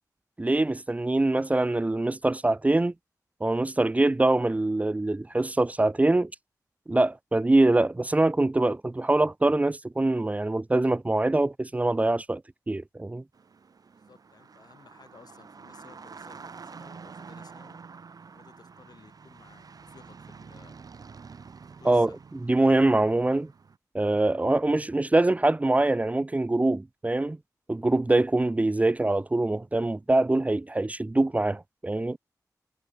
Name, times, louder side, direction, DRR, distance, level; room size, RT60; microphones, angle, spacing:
voice 1, 0.4-2.9 3.4-6.3 6.9-12.4 12.7-13.2 21.8-22.1 22.4-23.5 23.9-27.4 27.7-32.2, right 2 dB, 20° right, 1.0 m, -24 dB
sound 1, 13.3-23.8, right 5 dB, 70° right, 4.4 m, -48 dB
voice 2, 14.0-17.8 18.3-20.7 21.8-22.2 24.8-24.9, left 5 dB, 80° left, 6.6 m, -56 dB
wide cardioid pair, 120°, 7 cm